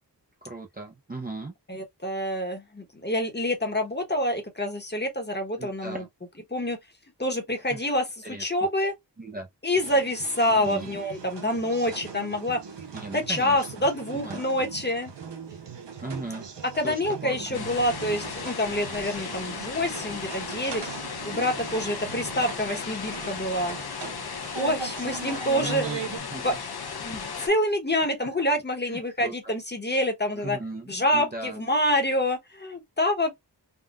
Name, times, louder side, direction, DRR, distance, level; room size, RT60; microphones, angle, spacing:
voice 1, 0.4-1.5 5.6-6.1 7.7-7.8 8.2-8.4 9.2-9.5 10.5-10.9 12.9-13.7 14.1-14.4 16.0-16.5 16.8-17.7 25.6-26.6 28.8-29.5 30.3-31.6, right 2 dB, 20° right, 0.6 m, -37 dB
voice 2, 1.7-6.0 6.5-6.8 7.2-8.9 9.6-12.6 13.1-15.1 16.7-20.8 21.2-23.8 24.6-25.8 26.4-26.5 27.0-30.6 30.9-33.3, left 1 dB, 25° left, 1.0 m, -27 dB
sound 1, 9.8-26.2, right 6 dB, 85° right, 0.9 m, -40 dB
sound 2, 17.5-27.5, left 6 dB, 65° left, 0.8 m, -36 dB
3.7 x 2.3 x 2.4 m
wide cardioid pair, 80°, 42 cm